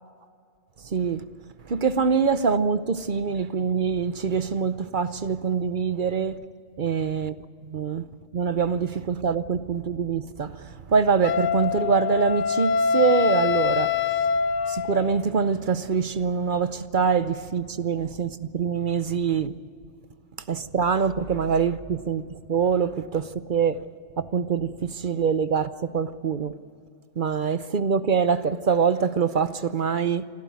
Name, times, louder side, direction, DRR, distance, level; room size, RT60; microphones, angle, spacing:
voice 1, 0.9-1.2 1.7-6.4 6.8-7.4 7.7-8.1 8.3-14.0 14.7-19.5 20.5-23.8 24.2-26.5 27.2-30.3, right 6 dB, 50° right, 0.8 m, -24 dB
Wind instrument woodwind instrument, 11.2-15.2, left 6 dB, 90° left, 1.2 m, -24 dB
26.5 x 13.5 x 9.4 m
omnidirectional pair, 1.2 m